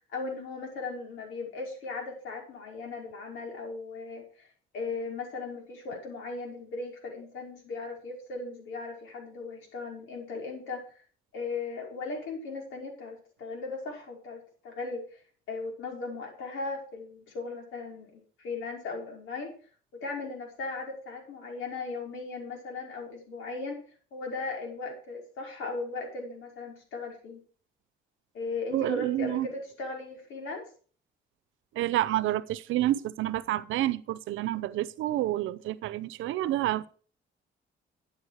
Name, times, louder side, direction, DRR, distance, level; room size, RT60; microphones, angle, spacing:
voice 1, 0.1-4.5 4.7-10.8 11.3-15.0 15.5-19.5 20.0-23.8 24.1-27.4 28.3-30.6, left 3 dB, 90° left, 5.5 m, -37 dB
voice 2, 28.7-29.5 31.7-36.9, right 14 dB, 85° right, 0.8 m, -29 dB
13.0 x 9.0 x 5.0 m
cardioid pair, 90°, 20 cm